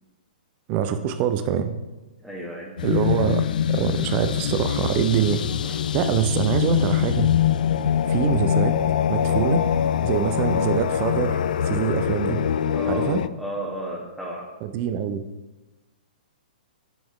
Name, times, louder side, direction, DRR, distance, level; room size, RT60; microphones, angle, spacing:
voice 1, 0.7-1.7 2.8-7.3 8.1-8.8 9.1-9.6 10.0-12.4 12.9-13.2 14.6-15.2, right 9 dB, 35° right, 9 dB, 0.5 m, -24 dB
voice 2, 2.2-2.7 12.7-14.5, right 1 dB, ahead, -5 dB, 1.1 m, -33 dB
sound 1, 2.8-13.3, left 9 dB, 65° left, 0.3 m, -23 dB
6.2 x 5.4 x 4.7 m, 1.1 s
figure-of-eight pair, 120°, 5 cm